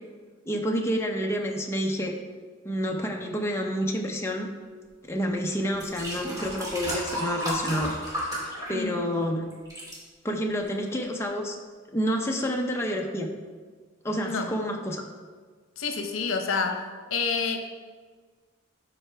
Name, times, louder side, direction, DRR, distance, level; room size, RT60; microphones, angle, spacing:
voice 1, 0.5-2.1 2.6-4.5 5.0-7.9 8.7-9.4 10.2-11.6 11.9-13.3 14.0-15.0, equal, 15° left, 0 dB, 0.7 m, -28 dB
sound 1, 5.1-5.2 5.7-9.2 9.5-10.0 10.7-10.8, equal, 20° right, 2.3 m, -33 dB
voice 2, 8.7-9.0 14.2-14.5 15.8-16.8 17.1-17.6, left 4 dB, 80° left, 5 dB, 0.8 m, -28 dB
12.5 x 4.5 x 3.4 m, 1.5 s
head